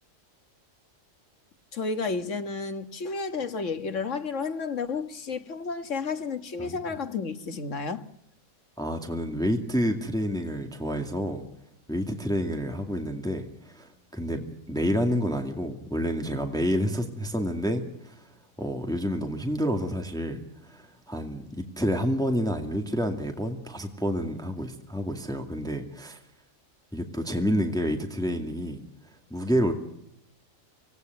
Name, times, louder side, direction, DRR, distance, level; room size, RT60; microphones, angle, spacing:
voice 1, 1.7-8.1, left 4 dB, 65° left, 1.8 m, -31 dB
voice 2, 8.8-11.4 11.9-18.3 18.6-26.2 26.9-28.8 29.3-29.7, equal, 5° left, 2.2 m, -29 dB
26.0 x 18.0 x 9.3 m
omnidirectional pair, 1.4 m